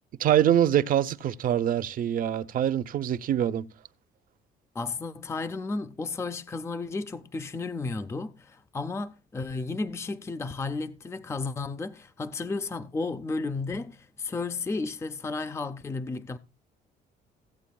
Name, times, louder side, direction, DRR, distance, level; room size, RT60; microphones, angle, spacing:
voice 1, 0.2-3.6, right 10 dB, 55° right, 0.7 m, -24 dB
voice 2, 4.7-16.4, left 3 dB, 15° left, 0.5 m, -33 dB
16.0 x 8.1 x 2.3 m
cardioid pair, 110°, 17 cm